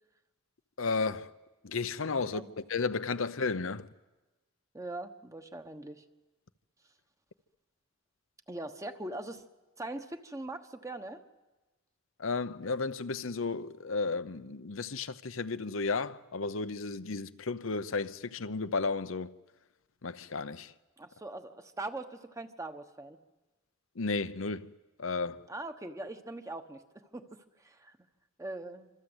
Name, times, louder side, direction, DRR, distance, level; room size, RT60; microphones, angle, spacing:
voice 1, 0.8-1.3 1.6-3.9 12.2-19.3 20.0-20.7 24.0-24.7 25.0-25.5, left 4 dB, 75° left, 0.9 m, -33 dB
voice 2, 2.2-2.5 4.7-6.0 8.5-9.4 9.8-11.2 21.0-23.2 25.5-28.0 28.4-28.9, right 2 dB, 15° right, 1.2 m, -41 dB
26.5 x 26.0 x 8.1 m
head